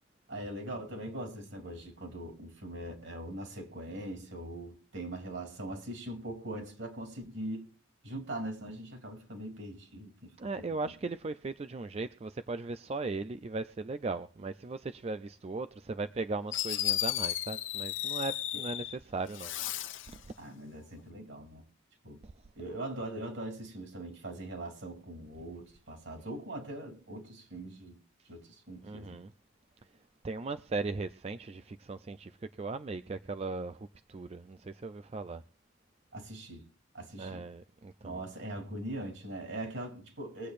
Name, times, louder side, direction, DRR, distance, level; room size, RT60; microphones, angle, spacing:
voice 1, 0.3-7.7 8.0-10.7 18.5-18.6 20.4-21.6 22.0-22.2 22.5-28.0 28.2-29.2 36.1-36.6 36.9-37.4 38.0-40.5, right 1 dB, 65° right, 3.3 m, -41 dB
voice 2, 10.4-19.5 20.1-20.2 22.2-22.3 28.8-29.3 30.2-35.4 37.2-38.2, right 3 dB, 30° right, 0.4 m, -38 dB
Fireworks, 16.1-16.2 16.5-18.9 19.3-20.1, left 12 dB, 75° left, 0.9 m, -34 dB
22.5 x 8.5 x 2.5 m
head